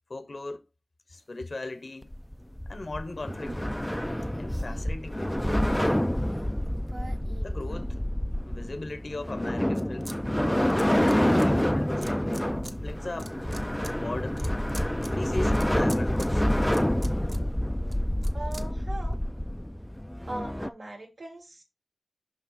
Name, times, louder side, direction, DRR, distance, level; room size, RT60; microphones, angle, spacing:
voice 1, 0.1-0.6 1.1-2.2 2.7-3.6 4.3-5.3 7.4-8.0 8.4-10.2 10.7-12.1 12.8-13.4 14.0-14.4 15.0-16.4, left 2 dB, 80° left, 1.1 m, -38 dB
sound 1, 2.0-20.7, equal, 10° left, 0.3 m, -27 dB
sound 2, 3.2-8.3 8.8-10.2 10.4-11.5 12.0-12.7 13.1-19.2, right 2 dB, 45° right, 1.0 m, -46 dB
voice 2, 18.3-19.2 20.3-21.6, right 1 dB, 90° right, 2.1 m, -39 dB
5.8 x 5.5 x 4.0 m
wide cardioid pair, 65°, 0 cm